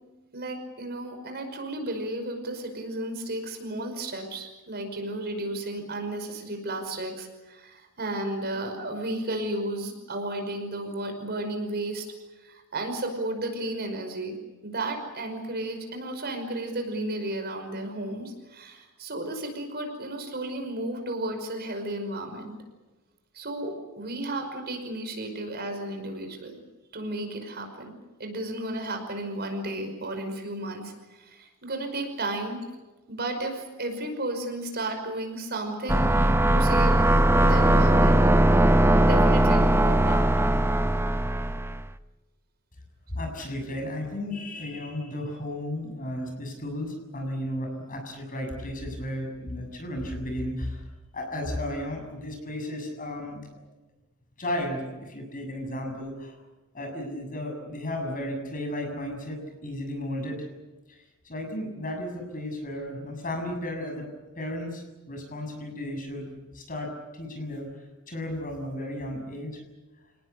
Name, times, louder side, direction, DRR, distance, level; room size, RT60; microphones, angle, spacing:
voice 1, 0.3-12.1 12.3-14.4 14.6-22.6 23.3-26.5 26.9-32.6 33.1-37.0 37.4-40.3, right 1 dB, 45° right, 5 dB, 5.4 m, -33 dB
sound 1, 35.9-41.8, right 1 dB, 10° right, 0.7 m, -20 dB
voice 2, 43.1-50.8 51.1-53.5 54.4-56.4 56.7-60.5 60.9-61.0 61.3-64.1 64.4-69.6, left 1 dB, 40° left, 3 dB, 7.1 m, -34 dB
29.0 x 19.0 x 8.3 m, 1.2 s
head